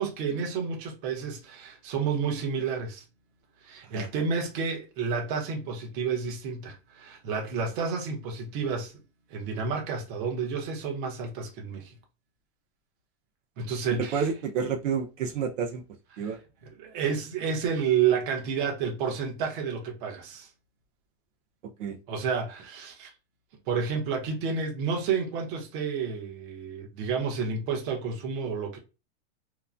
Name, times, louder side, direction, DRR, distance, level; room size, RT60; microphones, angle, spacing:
voice 1, 0.0-3.0 3.6-9.0 9.3-11.9 13.6-14.3 16.1-20.5 22.1-23.1 23.7-28.8, right 6 dB, 45° right, 1.0 m, -30 dB
voice 2, 14.1-15.8 16.2-16.4 21.8-22.0, right 6 dB, 85° right, 0.7 m, -29 dB
2.9 x 2.2 x 2.4 m
supercardioid pair, 155°, 36 cm